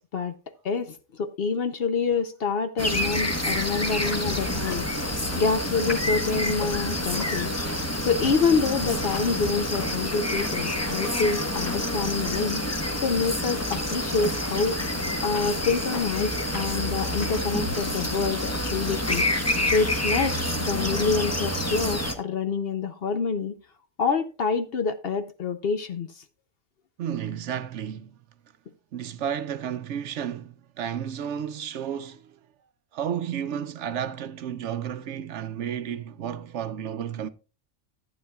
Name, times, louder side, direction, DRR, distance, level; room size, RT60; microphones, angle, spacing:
voice 1, 0.6-5.1 5.4-12.6 13.0-19.2 19.7-23.6 24.0-26.2, left 5 dB, 55° left, 0.8 m, -27 dB
sound 1, 2.8-22.1, left 1 dB, 15° left, 0.9 m, -28 dB
Chewing mastication, 3.5-19.2, left 2 dB, 85° left, 5.7 m, -40 dB
voice 2, 27.0-28.2 28.9-32.4 32.9-37.3, right 9 dB, 65° right, 0.8 m, -32 dB
14.5 x 8.7 x 2.3 m
omnidirectional pair, 1.4 m